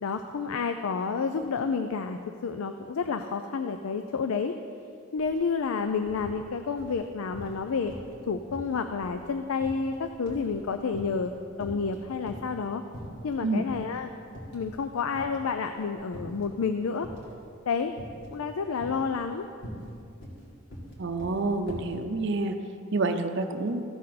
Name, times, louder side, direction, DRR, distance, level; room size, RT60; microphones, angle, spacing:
voice 1, 0.0-4.5 5.1-7.9 8.3-11.3 11.6-12.8 13.2-14.1 14.5-17.1 17.7-17.9 18.3-19.5, left 5 dB, 85° left, 8 dB, 0.4 m, -30 dB
sound 1, 5.2-5.4 5.7-6.4 6.8-7.6 7.9-8.2 8.5-11.3 11.6-12.6 12.9-13.4 13.7-13.9 14.3-14.9 15.1-16.5 17.0-17.4 18.0-18.4 18.8-22.0, equal, 55° left, 2.2 m, -42 dB
voice 2, 21.0-22.6 22.9-23.8, right 3 dB, 55° right, 6 dB, 0.6 m, -28 dB
15.0 x 6.5 x 4.1 m, 2.5 s
head